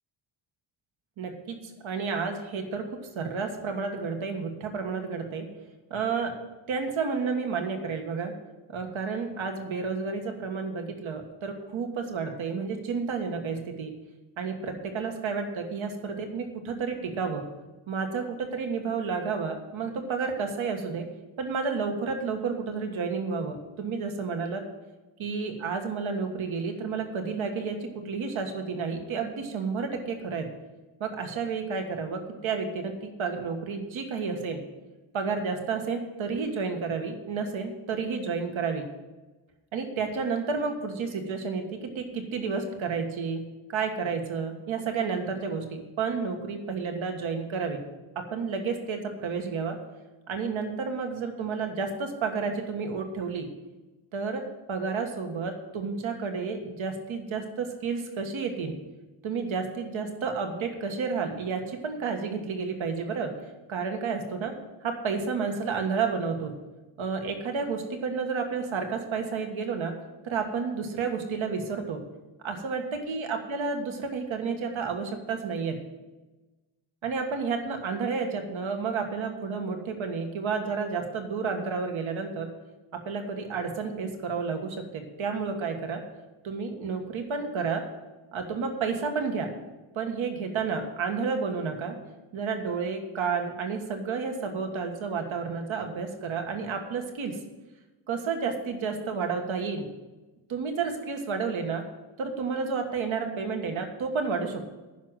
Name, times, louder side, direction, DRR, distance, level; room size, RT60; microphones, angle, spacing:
voice 1, 1.2-2.9 3.1-5.5 5.9-6.3 6.7-8.3 8.7-13.9 14.4-17.5 17.9-21.1 21.4-24.6 25.2-30.5 31.0-34.6 35.1-38.9 39.7-47.8 48.1-49.8 50.3-53.5 54.1-58.8 59.2-63.3 63.7-64.5 64.8-66.5 67.0-70.0 70.2-72.0 72.4-75.8 77.0-82.5 82.9-86.0 86.4-87.8 88.3-89.5 89.9-92.0 92.3-97.4 98.1-99.9 100.5-101.9 102.2-104.7, right 5 dB, 75° right, 4 dB, 1.6 m, -31 dB
10.0 x 6.2 x 8.9 m, 1.1 s
wide cardioid pair, 130°, 48 cm